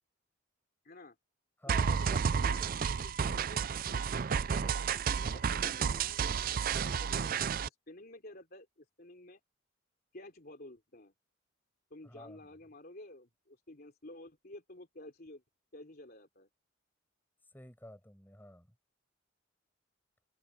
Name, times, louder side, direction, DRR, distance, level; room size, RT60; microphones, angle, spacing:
voice 1, 0.8-1.2 1.7-4.0 4.3-9.4 10.1-11.1 11.9-15.4 15.7-16.5, left 1 dB, 45° left, 3.3 m, -52 dB
voice 2, 1.6-2.4 12.0-12.4 17.5-18.7, left 1 dB, 10° left, 6.1 m, -51 dB
sound 1, 1.7-7.7, right 6 dB, 45° right, 0.4 m, -31 dB
head